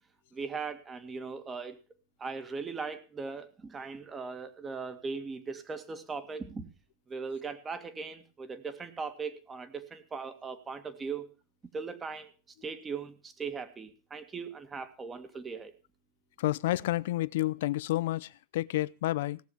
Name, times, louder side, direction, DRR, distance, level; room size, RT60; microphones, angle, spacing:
voice 1, 0.3-1.8 2.2-6.7 7.1-11.3 11.7-12.3 12.6-15.7, right 5 dB, 20° right, 2.1 m, -39 dB
voice 2, 16.4-19.4, left 16 dB, 85° left, 0.6 m, -30 dB
17.5 x 7.3 x 7.2 m
supercardioid pair, 125°, 0 cm